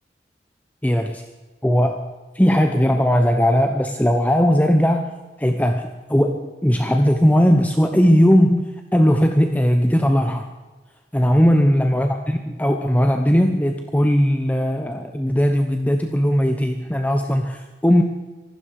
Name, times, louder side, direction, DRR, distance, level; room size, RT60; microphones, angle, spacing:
voice 1, 0.8-1.2 1.6-2.1 2.4-5.1 5.4-10.5 11.1-18.0, equal, 10° left, 5 dB, 0.9 m, -18 dB
24.5 x 12.0 x 4.8 m, 1.3 s
head